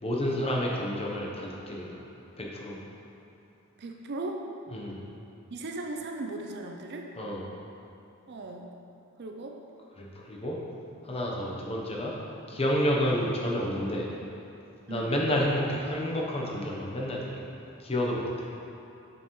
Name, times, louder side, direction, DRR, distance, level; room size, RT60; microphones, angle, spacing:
voice 1, 0.0-2.0 2.4-2.8 4.7-5.0 7.2-7.4 10.0-10.6 11.0-12.1 12.5-14.1 14.9-17.5 17.8-18.5, equal, 25° left, -3 dB, 0.8 m, -30 dB
voice 2, 3.8-4.4 5.5-7.1 8.3-8.7 9.2-9.6 14.9-15.2, right 2 dB, 50° right, 2 dB, 0.5 m, -37 dB
7.1 x 6.6 x 3.1 m, 2.8 s
head